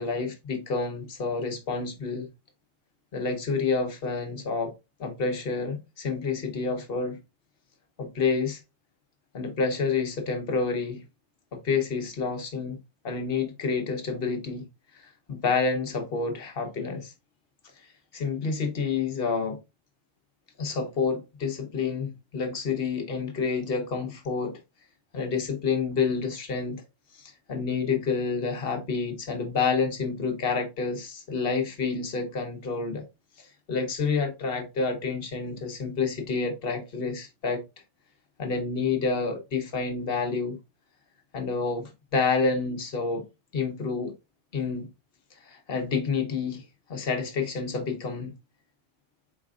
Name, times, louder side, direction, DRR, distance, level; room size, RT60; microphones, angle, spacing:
voice 1, 0.0-2.3 3.1-4.7 5.0-7.2 8.0-8.6 9.3-11.0 11.5-12.8 13.0-14.7 14.9-17.1 18.1-19.6 20.6-24.6 25.1-26.8 27.1-33.0 33.4-37.6 38.4-40.6 41.3-43.3 43.5-44.1 44.5-44.9 45.4-46.6 46.9-48.3, left 4 dB, 55° left, 1.1 m, -29 dB
4.5 x 4.0 x 2.4 m
omnidirectional pair, 1.2 m